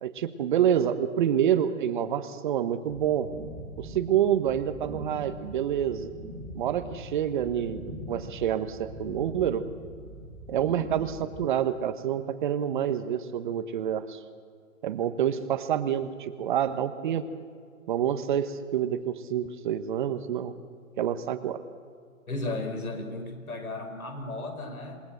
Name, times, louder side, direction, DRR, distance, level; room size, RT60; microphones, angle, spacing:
voice 1, 0.0-3.3 3.8-6.1 6.5-9.6 10.5-14.2 14.8-17.3 17.9-20.5 21.0-21.6, right 9 dB, 35° right, 11 dB, 1.2 m, -27 dB
sound 1, 2.9-11.4, equal, 5° left, 3.0 m, -42 dB
voice 2, 22.3-25.0, left 2 dB, 85° left, 6 dB, 5.6 m, -34 dB
27.5 x 19.5 x 7.9 m, 2.2 s
hypercardioid pair, 150°, 42 cm